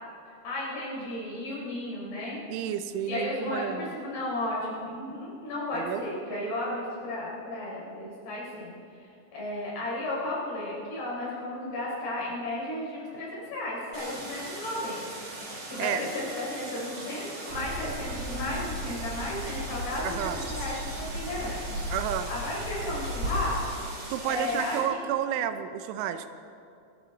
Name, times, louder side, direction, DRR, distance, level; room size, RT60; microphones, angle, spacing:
voice 1, 0.3-2.4 3.1-8.7 9.3-15.0 15.4-21.7 22.3-25.0, left 1 dB, 55° left, -5 dB, 6.1 m, -34 dB
voice 2, 2.5-3.9 5.7-6.1 11.6-11.8 15.8-16.0 20.0-20.4 21.9-22.3 24.1-26.3, right 10 dB, 85° right, 10 dB, 3.2 m, -31 dB
Stream, 13.9-24.8, right 2 dB, 60° right, 5.5 m, -41 dB
sound 1, 17.5-23.6, equal, 45° right, 3.3 m, -35 dB
24.0 x 14.0 x 4.1 m, 2.5 s
omnidirectional pair, 5.4 m